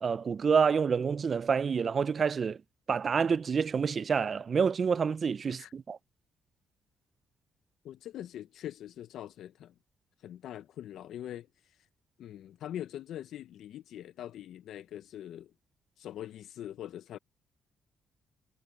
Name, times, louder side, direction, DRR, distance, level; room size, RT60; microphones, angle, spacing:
voice 1, 0.0-2.6 2.9-6.0, right 6 dB, 45° right, 0.4 m, -28 dB
voice 2, 7.8-9.7 10.2-11.9 12.2-15.5 16.0-17.2, left 11 dB, 75° left, 0.5 m, -43 dB
cardioid pair, 90°, 0 cm